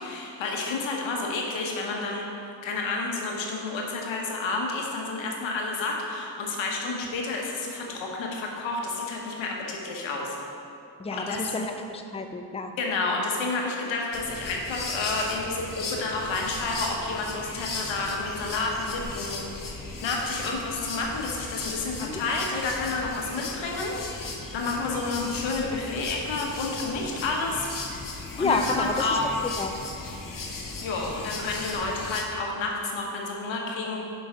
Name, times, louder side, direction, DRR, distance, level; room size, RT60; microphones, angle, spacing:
voice 1, 0.0-2.2 2.6-10.4 11.1-11.6 12.8-27.7 28.4-29.3 30.8-34.0, left 3 dB, 85° left, -1 dB, 1.2 m, -30 dB
voice 2, 11.0-12.7 22.0-22.2 28.4-29.2 29.6-29.7, left 3 dB, 15° left, 5 dB, 0.6 m, -29 dB
sound 1, 14.1-32.2, left 3 dB, 45° left, 1.2 m, -37 dB
7.0 x 5.3 x 5.1 m, 2.7 s
supercardioid pair, 45°, 45 cm